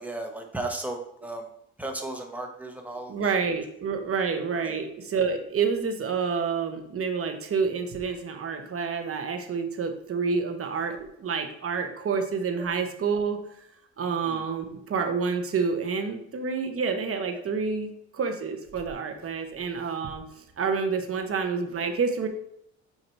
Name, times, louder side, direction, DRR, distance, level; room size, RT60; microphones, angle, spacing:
voice 1, 0.0-1.4 1.8-3.3 4.6-4.8 14.2-14.4, right 2 dB, 5° right, 2 dB, 1.2 m, -35 dB
voice 2, 3.1-13.4 14.0-22.3, right 5 dB, 50° right, 5 dB, 1.1 m, -28 dB
8.1 x 2.8 x 4.5 m, 0.74 s
cardioid pair, 90°, 30 cm